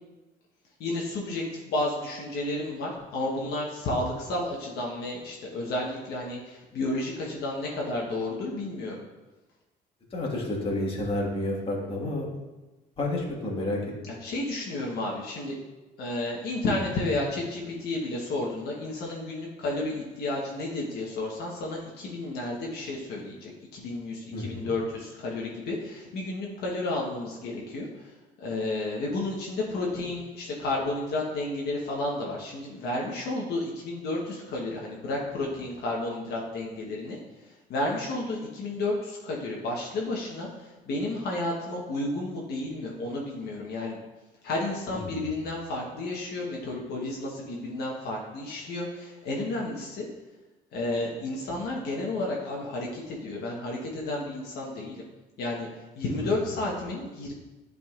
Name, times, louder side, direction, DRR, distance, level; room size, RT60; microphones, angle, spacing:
voice 1, 0.8-9.0 14.1-15.6 16.0-28.1 28.4-37.2 37.7-44.0 44.4-50.1 50.7-55.0 55.4-55.7 56.0-57.3, left 2 dB, 70° left, -2 dB, 1.2 m, -32 dB
voice 2, 10.1-12.3 13.0-13.8 24.3-24.7 44.9-45.3 56.1-56.4, left 1 dB, 35° left, -3 dB, 1.6 m, -30 dB
10.5 x 3.9 x 2.5 m, 1.1 s
cardioid pair, 110°, 17 cm